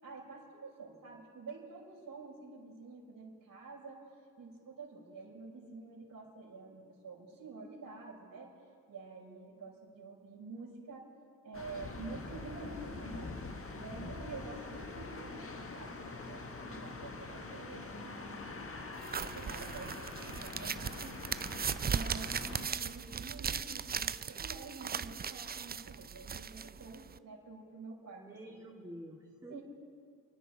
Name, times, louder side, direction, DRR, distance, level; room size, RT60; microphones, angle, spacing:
voice 1, 0.0-4.0 4.4-8.5 8.9-11.0 11.4-18.5 19.1-21.3 21.8-28.5 29.5-29.6, right 3 dB, 50° right, -2 dB, 5.4 m, -48 dB
sound 1, 11.5-22.7, left 3 dB, 30° left, 1.5 m, -44 dB
sound 2, 19.0-27.2, right 6 dB, 25° right, 0.4 m, -38 dB
voice 2, 28.1-29.6, right 1 dB, 10° right, -5 dB, 3.1 m, -49 dB
29.5 x 9.9 x 4.6 m, 2.3 s
supercardioid pair, 50°, 42 cm